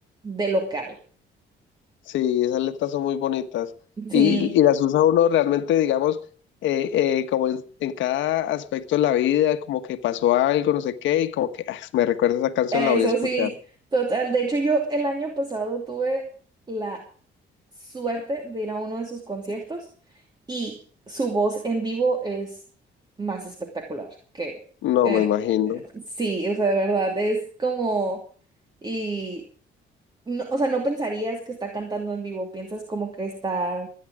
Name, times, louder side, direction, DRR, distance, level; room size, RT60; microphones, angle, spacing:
voice 1, 0.2-1.0 4.0-4.5 12.7-13.5 13.9-16.3 16.7-17.1 17.8-19.9 20.5-20.8 21.1-22.6 23.2-24.6 25.0-25.3 25.9-28.2 28.8-29.4 30.3-33.9, right 3 dB, 20° right, 2.7 m, -27 dB
voice 2, 2.1-3.7 4.1-6.2 6.6-13.1 13.4-13.5 24.8-25.8, left 11 dB, 85° left, 1.4 m, -22 dB
24.5 x 10.0 x 5.0 m
cardioid pair, 115°, 19 cm